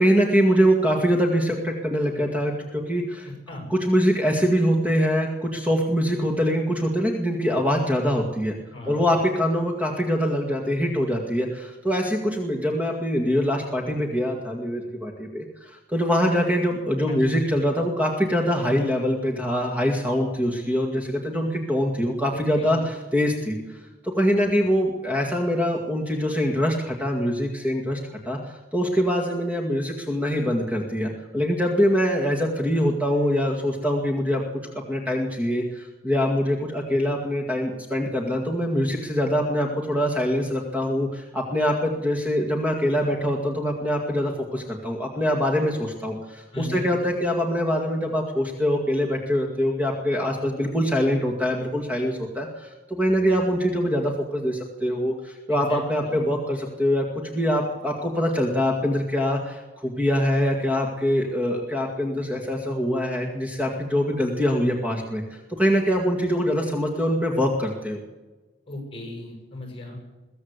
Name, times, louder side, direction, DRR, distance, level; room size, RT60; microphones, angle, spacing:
voice 1, 0.0-3.3 3.7-8.6 8.9-28.0 28.3-34.4 34.9-57.1 57.3-68.0, equal, 10° right, 1 dB, 2.1 m, -24 dB
voice 2, 8.7-9.1 17.1-17.3 22.3-22.8 46.5-46.9 55.5-56.2 68.7-70.0, left 2 dB, 30° left, 2 dB, 7.6 m, -35 dB
22.5 x 15.5 x 8.2 m, 1.2 s
head